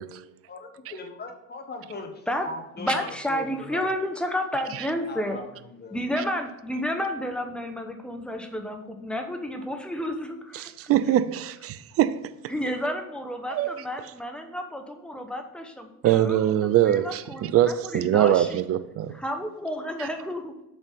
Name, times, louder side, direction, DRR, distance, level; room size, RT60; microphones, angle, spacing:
voice 1, 0.5-3.9 5.1-6.0, left 3 dB, 20° left, 1.4 m, -39 dB
voice 2, 2.8-5.4 5.9-10.9 12.5-18.6 19.1-20.6, equal, ahead, 0.9 m, -31 dB
voice 3, 10.5-12.2 13.5-13.8 16.0-19.2 20.0-20.1, right 11 dB, 35° right, 0.5 m, -23 dB
7.1 x 4.1 x 5.5 m
hypercardioid pair, 70°, 44 cm